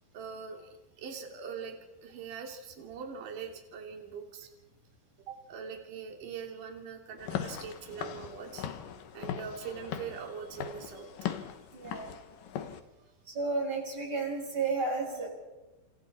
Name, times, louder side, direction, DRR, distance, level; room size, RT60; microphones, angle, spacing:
voice 1, 0.1-0.7 1.0-4.5 5.3-8.7 9.1-11.3 13.0-13.1, right 6 dB, 45° right, 2 dB, 4.1 m, -42 dB
Walk footsteps / Siren, 7.2-12.8, left 9 dB, 75° left, 1.9 m, -39 dB
voice 2, 11.7-12.1 13.3-15.3, right 3 dB, 20° right, 0 dB, 6.4 m, -32 dB
29.0 x 28.5 x 4.4 m, 1.1 s
omnidirectional pair, 5.8 m